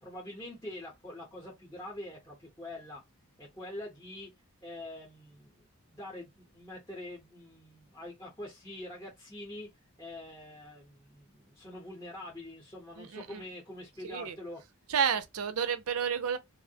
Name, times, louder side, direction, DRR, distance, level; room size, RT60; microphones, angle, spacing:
voice 1, 0.0-3.0 3.4-4.3 4.6-9.7 10.0-14.6, left 1 dB, 15° left, 0.7 m, -45 dB
voice 2, 13.0-13.4 14.0-14.4 14.9-16.4, right 7 dB, 80° right, 0.5 m, -31 dB
2.5 x 2.0 x 2.7 m
head